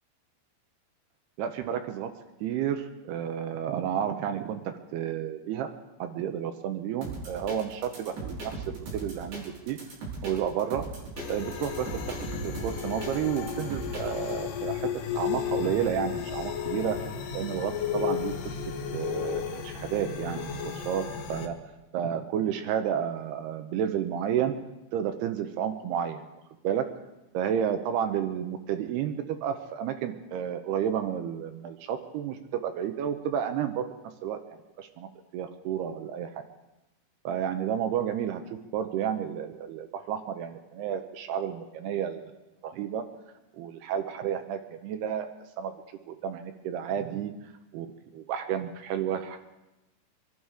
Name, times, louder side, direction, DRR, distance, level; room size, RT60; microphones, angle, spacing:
voice 1, 1.4-2.1 2.4-5.7 6.0-9.8 10.2-10.8 11.3-17.0 17.3-18.3 18.9-21.0 21.3-21.6 21.9-24.6 24.9-26.2 26.6-26.9 27.3-33.9 34.2-35.1 35.3-36.3 37.2-38.4 38.7-42.3 42.6-43.0 43.5-45.3 45.6-45.7 46.1-47.3 47.7-47.9 48.1-49.4, right 9 dB, 75° right, 7 dB, 2.6 m, -31 dB
sound 1, 7.0-14.3, right 3 dB, 55° right, 5.6 m, -39 dB
sound 2, 11.2-21.5, left 8 dB, 65° left, 2.4 m, -34 dB
24.5 x 12.0 x 4.9 m, 1.0 s
omnidirectional pair, 5.2 m